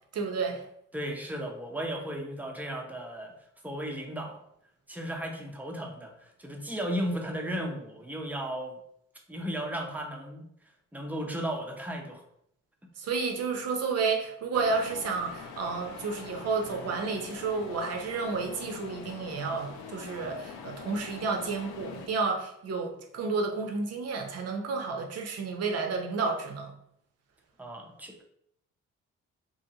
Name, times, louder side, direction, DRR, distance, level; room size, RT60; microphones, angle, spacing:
voice 1, 0.1-0.6 13.0-26.7, right 4 dB, 55° right, 2 dB, 0.7 m, -31 dB
voice 2, 0.9-3.3 3.6-4.4 4.9-8.8 9.3-10.4 10.9-12.2 27.6-28.2, equal, 5° right, 2 dB, 0.6 m, -35 dB
sound 1, 14.5-22.1, left 6 dB, 85° left, 0.5 m, -43 dB
2.8 x 2.7 x 2.8 m, 0.73 s
cardioid pair, 90°, 30 cm